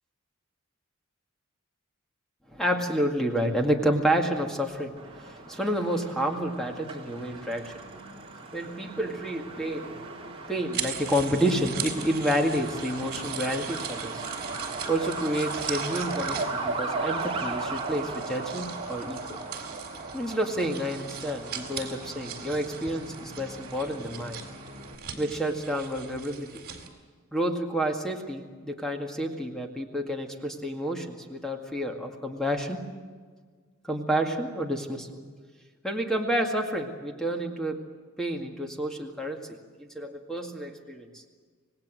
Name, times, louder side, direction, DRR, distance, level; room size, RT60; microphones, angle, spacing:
voice 1, 2.5-8.0 8.5-14.2 14.9-19.4 20.1-24.4 25.2-26.6 27.3-32.8 33.8-35.1 35.8-37.8 38.2-39.4 39.8-41.2, equal, 5° left, 3 dB, 2.1 m, -29 dB
Truck, 5.0-25.0, right 3 dB, 25° right, 3.2 m, -37 dB
sound 1, 10.7-26.9, right 7 dB, 50° right, 4.0 m, -40 dB
27.0 x 19.5 x 7.7 m, 1.6 s
head